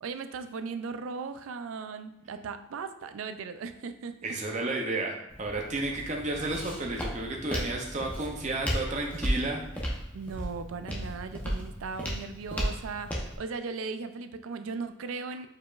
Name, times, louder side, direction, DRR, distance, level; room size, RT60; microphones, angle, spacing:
voice 1, 0.0-4.4 10.1-15.5, right 4 dB, 80° right, 10 dB, 0.4 m, -37 dB
voice 2, 4.2-9.9, right 2 dB, 35° right, 0 dB, 0.6 m, -32 dB
Walk footsteps, 5.3-13.4, equal, 5° left, 0.7 m, -35 dB
4.7 x 4.6 x 2.4 m, 0.89 s
head